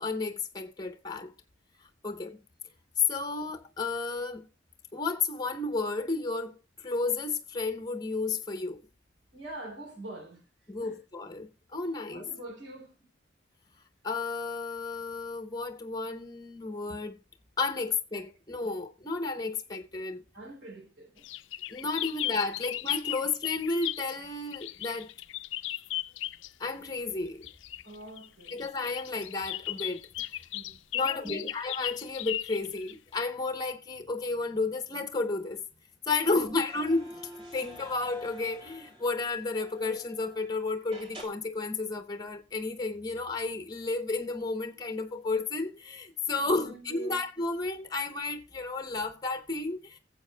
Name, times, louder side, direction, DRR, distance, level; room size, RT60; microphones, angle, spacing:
voice 1, 0.0-1.3 2.0-2.4 3.1-4.5 4.9-8.8 10.7-12.3 14.0-17.1 17.6-20.2 21.7-25.1 26.6-27.4 28.5-30.1 30.9-35.6 36.1-37.2 37.5-50.0, left 3 dB, 20° left, 0.8 m, -32 dB
voice 2, 9.3-10.4 10.8-11.0 12.1-13.1 20.3-21.2 27.8-28.6 30.5-31.5 36.2-36.5 46.4-47.2, right 1 dB, 75° right, 3.3 m, -45 dB
sound 1, 21.2-24.1 24.5-26.5 27.4-33.1, left 14 dB, 80° left, 0.5 m, -36 dB
sound 2, 36.1-40.5 40.9-41.2, equal, 30° right, 2.7 m, -48 dB
22.0 x 7.6 x 2.2 m
head